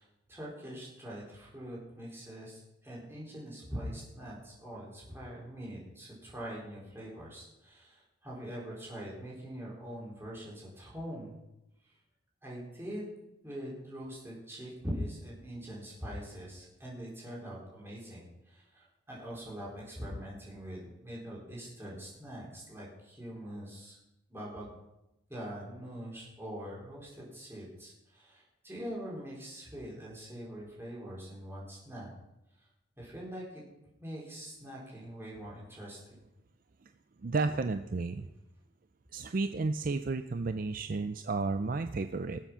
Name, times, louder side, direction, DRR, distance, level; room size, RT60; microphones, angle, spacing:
voice 1, 0.0-11.4 11.9-12.0 12.4-13.1 13.4-24.0 24.3-24.8 25.3-32.1 32.6-32.7 33.0-33.6 34.0-36.2, equal, 10° right, -5 dB, 4.3 m, -43 dB
voice 2, 37.2-38.3 39.1-42.4, right 3 dB, 45° right, 9 dB, 0.4 m, -32 dB
19.5 x 7.4 x 5.7 m, 0.92 s
head